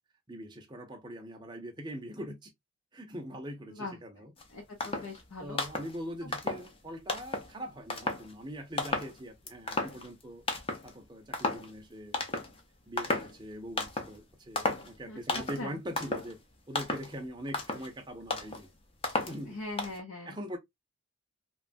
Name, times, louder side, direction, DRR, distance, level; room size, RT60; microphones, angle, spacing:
voice 1, 0.3-2.5 2.9-4.3 4.8-4.9 5.4-10.4 10.8-12.4 12.9-16.4 16.7-18.7 19.3-19.6 20.2-20.6, equal, 20° right, 0.6 m, -42 dB
voice 2, 3.7-4.0 4.5-5.6 15.1-15.8 19.5-20.4, left 2 dB, 90° left, 0.8 m, -41 dB
sound 1, 4.4-4.5 4.8-5.2 5.5-6.0 6.3-6.7 7.1-7.5 7.9-8.3 8.8-9.2 9.5-10.2 10.5-10.9 11.3-11.7 12.1-12.6 13.0-13.4 13.8-14.2 14.6-14.9 15.3-15.7 16.0-16.3 16.7-17.1 17.5-17.9 18.3-18.6 19.0-19.4 19.8-20.0, left 2 dB, 25° left, 0.5 m, -33 dB
3.0 x 2.2 x 2.4 m
head